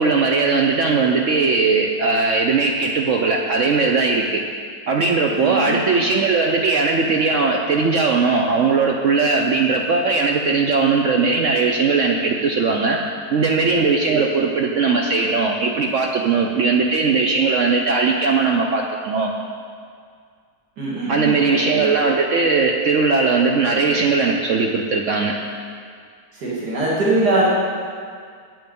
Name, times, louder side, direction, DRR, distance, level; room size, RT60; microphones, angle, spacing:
voice 1, 0.0-4.4 4.9-13.0 13.3-19.3 21.1-25.3, right 4 dB, 60° right, 1 dB, 0.9 m, -19 dB
voice 2, 5.3-5.8 14.1-14.5 20.8-21.9 26.3-27.4, right 2 dB, 85° right, -7 dB, 2.4 m, -22 dB
9.1 x 8.7 x 5.3 m, 2.1 s
omnidirectional pair, 1.7 m